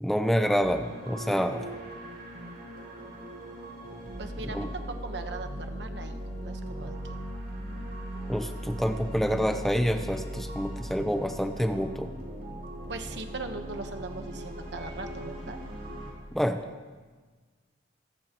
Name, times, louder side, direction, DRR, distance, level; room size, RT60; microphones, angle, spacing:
voice 1, 0.0-1.6 4.5-4.7 8.3-12.1 16.3-16.6, equal, ahead, 5 dB, 0.8 m, -27 dB
sound 1, 0.6-16.1, right 1 dB, 55° right, 5.7 m, -39 dB
voice 2, 4.2-7.2 12.9-15.6, right 3 dB, 70° right, 6 dB, 1.2 m, -39 dB
28.0 x 15.0 x 3.0 m, 1.4 s
head